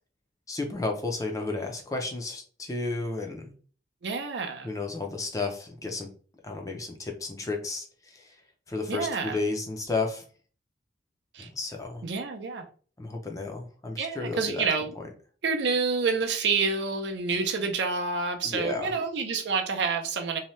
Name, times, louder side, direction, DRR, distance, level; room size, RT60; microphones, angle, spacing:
voice 1, 0.5-3.5 4.6-6.1 6.4-8.4 8.7-10.2 11.4-12.0 13.0-14.7 15.0-15.1 18.4-18.9, left 3 dB, 20° left, 0.4 m, -32 dB
voice 2, 4.0-4.7 8.9-9.4 11.3-11.5 12.0-12.7 14.0-14.9 15.4-20.4, right 4 dB, 65° right, 0.5 m, -28 dB
2.7 x 2.1 x 3.0 m
head